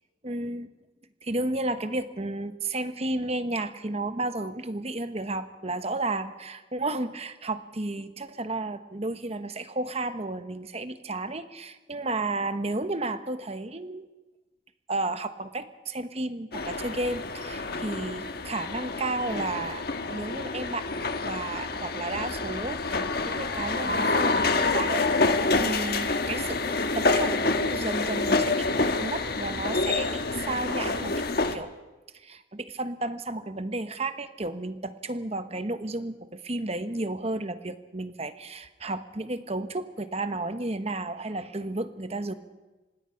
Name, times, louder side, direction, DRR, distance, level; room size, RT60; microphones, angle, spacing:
voice 1, 0.2-0.7 1.2-14.1 14.9-20.9 21.2-31.7 32.1-42.3, right 2 dB, 35° right, 10 dB, 1.0 m, -33 dB
sound 1, 16.5-31.6, left 3 dB, 55° left, 1.3 m, -27 dB
25.5 x 20.0 x 5.9 m, 1.2 s
head